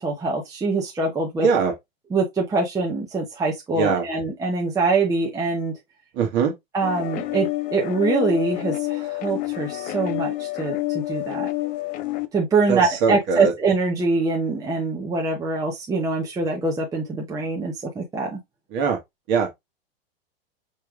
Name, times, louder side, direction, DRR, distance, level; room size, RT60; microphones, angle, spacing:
voice 1, 0.0-1.5 2.1-5.7 6.7-11.5 12.3-18.4, right 3 dB, 10° right, 0.9 m, -24 dB
voice 2, 1.4-1.7 3.7-4.1 6.1-6.5 12.7-13.5 18.7-19.0 19.3-19.5, right 5 dB, 35° right, 1.4 m, -21 dB
sound 1, 6.8-12.3, left 18 dB, 25° left, 0.5 m, -28 dB
5.3 x 3.4 x 2.4 m
hypercardioid pair, 130°, 31 cm